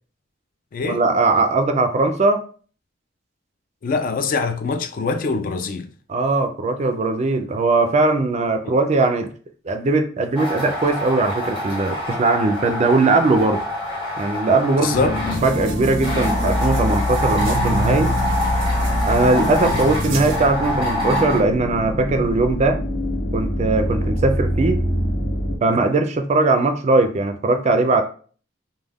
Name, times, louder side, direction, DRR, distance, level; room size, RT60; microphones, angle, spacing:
voice 1, 0.8-2.4 6.1-9.3 9.7-13.6 14.2-18.1 19.1-22.8 23.3-24.8 25.6-28.0, right 3 dB, 35° right, 0.3 m, -19 dB
voice 2, 3.8-5.9 8.7-8.8 14.8-15.2 19.6-19.8, left 4 dB, 45° left, 0.3 m, -24 dB
sound 1, 10.4-15.4 16.0-21.4, equal, 25° left, 0.9 m, -26 dB
sound 2, 14.9-25.6, left 1 dB, 70° left, 0.7 m, -24 dB
sound 3, 15.3-20.5, right 3 dB, 85° right, 0.6 m, -35 dB
2.3 x 2.2 x 3.3 m
head